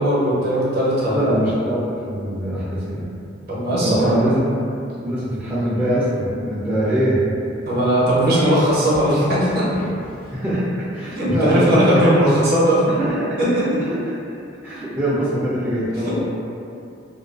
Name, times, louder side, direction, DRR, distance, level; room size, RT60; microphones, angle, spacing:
voice 1, 0.0-1.4 3.5-4.3 7.7-9.8 11.2-12.9 13.4-13.8 16.0-16.3, equal, 50° right, -8 dB, 0.6 m, -18 dB
voice 2, 1.1-3.1 3.8-4.4 5.0-7.2 10.3-10.7 10.9-12.1 12.9-13.9 14.6-16.3, equal, 10° right, -11 dB, 0.3 m, -22 dB
sound 1, 8.2-10.7, equal, 75° left, 0.6 m, -37 dB
2.3 x 2.2 x 2.3 m, 2.5 s
head